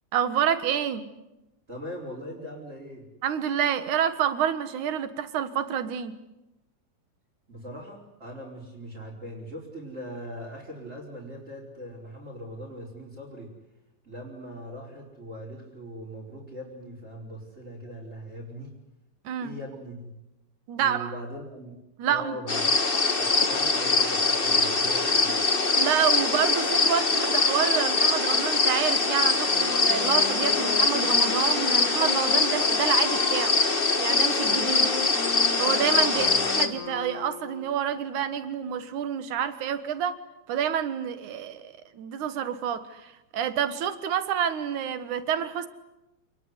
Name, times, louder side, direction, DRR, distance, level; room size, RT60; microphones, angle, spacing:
voice 1, 0.1-1.1 3.2-6.1 19.2-19.5 20.7-21.1 22.0-22.4 23.1-23.2 25.7-33.6 34.0-34.9 35.6-36.3 36.5-40.2 40.5-45.7, right 9 dB, 85° right, 11 dB, 3.0 m, -28 dB
voice 2, 1.7-3.0 7.5-13.5 14.0-18.7 19.4-20.1 20.7-21.8 22.1-22.8 23.1-25.4 36.1-36.4, equal, 20° right, -4 dB, 5.0 m, -40 dB
sound 1, 22.5-36.7, left 3 dB, 25° left, 1.3 m, -23 dB
Wind instrument woodwind instrument, 29.3-38.0, left 9 dB, 85° left, 2.8 m, -36 dB
28.5 x 20.0 x 9.7 m, 0.97 s
omnidirectional pair, 3.4 m